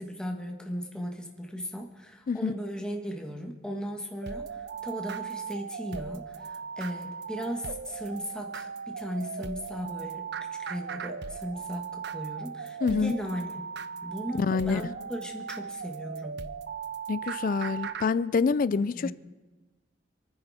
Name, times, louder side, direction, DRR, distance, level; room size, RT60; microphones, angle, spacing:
voice 1, 0.0-13.6 14.0-16.4 18.9-19.1, equal, 5° left, 1.6 m, -37 dB
sound 1, 4.2-18.1, right 6 dB, 65° right, 0.7 m, -38 dB
voice 2, 12.8-13.2 14.4-14.8 17.1-19.1, left 5 dB, 50° left, 0.4 m, -26 dB
27.0 x 9.8 x 4.3 m
head